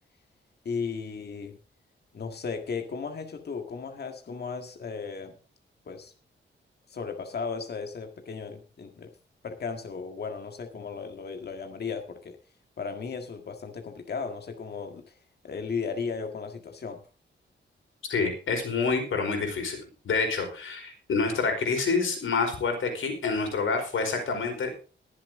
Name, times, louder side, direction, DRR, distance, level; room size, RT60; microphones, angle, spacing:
voice 1, 0.7-1.6 2.1-5.4 5.9-6.1 6.9-9.1 9.4-12.4 12.8-15.2 15.4-17.0, left 5 dB, 55° left, 5 dB, 1.8 m, -35 dB
voice 2, 18.1-24.7, left 4 dB, 85° left, 4 dB, 4.8 m, -27 dB
22.0 x 7.5 x 3.7 m, 0.35 s
wide cardioid pair, 110°, 20 cm